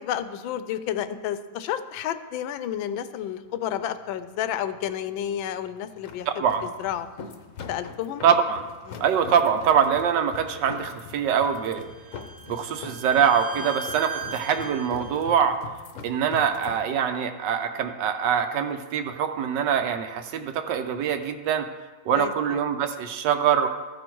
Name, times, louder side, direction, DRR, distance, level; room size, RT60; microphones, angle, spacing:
voice 1, 0.0-6.4 6.8-7.1 7.7-8.2 8.9-9.0 13.6-13.7 22.1-22.6, left 10 dB, 85° left, 12 dB, 1.3 m, -31 dB
sound 1, 3.4-16.8, left 5 dB, 55° left, 0.9 m, -43 dB
voice 2, 6.3-6.6 8.2-8.6 9.0-11.8 12.5-15.6 16.0-21.7 22.1-23.7, right 8 dB, 75° right, 8 dB, 1.2 m, -24 dB
Bowed string instrument, 11.4-15.2, right 4 dB, 45° right, 0.4 m, -39 dB
13.5 x 5.3 x 4.5 m, 1.3 s
omnidirectional pair, 2.1 m